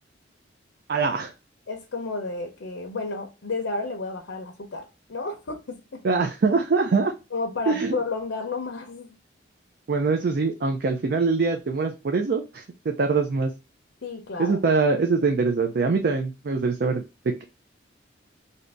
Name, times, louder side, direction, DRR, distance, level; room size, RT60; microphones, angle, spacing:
voice 1, 0.9-1.3 6.0-7.1 7.7-7.9 9.9-13.5 14.4-17.0, right 4 dB, 55° right, 0.4 m, -23 dB
voice 2, 1.7-6.0 7.3-9.2 14.0-14.6, left 3 dB, 80° left, 0.6 m, -32 dB
2.7 x 2.6 x 3.2 m
head